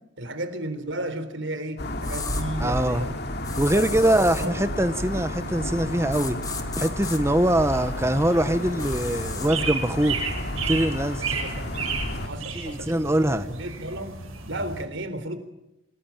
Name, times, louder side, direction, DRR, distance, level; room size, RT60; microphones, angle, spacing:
voice 1, 0.2-3.1 3.7-4.6 11.4-11.7 12.3-14.2 14.5-15.4, right 1 dB, 60° right, 3.8 m, -33 dB
sound 1, 1.8-12.3, left 1 dB, 50° left, 2.9 m, -32 dB
sound 2, 2.0-2.4 3.4-4.5 6.1-7.2 8.8-9.5, left 5 dB, 20° left, 2.0 m, -35 dB
voice 2, 2.6-3.0 3.6-6.4 6.8-10.2 10.7-11.4 12.5-13.4, right 1 dB, 15° right, 1.1 m, -23 dB
sound 3, 7.4-14.8, right 5 dB, 85° right, 7.8 m, -33 dB
27.5 x 20.0 x 8.8 m
head